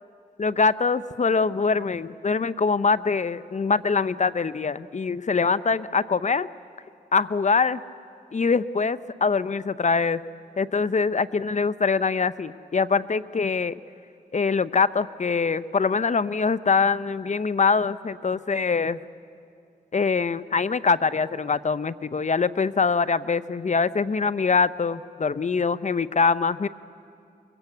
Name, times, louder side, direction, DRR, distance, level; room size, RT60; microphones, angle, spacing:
voice 1, 0.4-6.5 7.1-7.8 8.3-10.2 10.6-13.8 14.3-19.0 19.9-26.7, left 5 dB, 45° left, 16 dB, 0.7 m, -23 dB
23.0 x 22.0 x 8.3 m, 2.4 s
cardioid pair, 45°, 17 cm